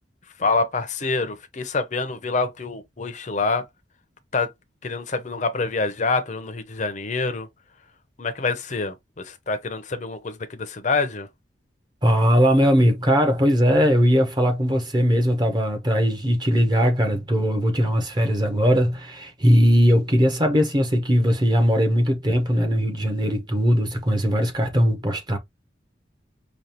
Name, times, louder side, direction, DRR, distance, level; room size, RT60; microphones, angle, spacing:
voice 1, 0.4-3.6 4.3-4.5 4.8-7.5 8.2-8.9 9.2-11.3, left 3 dB, 40° left, 0.7 m, -26 dB
voice 2, 12.0-25.4, equal, 25° right, 0.8 m, -20 dB
5.1 x 2.4 x 2.9 m
head